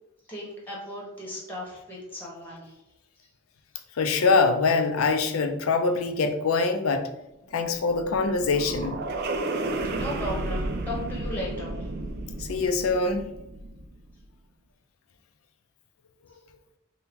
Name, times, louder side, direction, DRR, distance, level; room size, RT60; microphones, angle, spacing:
voice 1, 0.3-2.6 9.9-11.8, left 1 dB, 10° left, -3 dB, 1.0 m, -36 dB
voice 2, 4.0-7.1 7.5-9.0 12.4-13.3, left 4 dB, 85° left, 7 dB, 0.5 m, -24 dB
sound 1, 7.5-14.0, right 2 dB, 50° right, 0.4 m, -32 dB
4.3 x 2.2 x 3.5 m, 0.87 s
head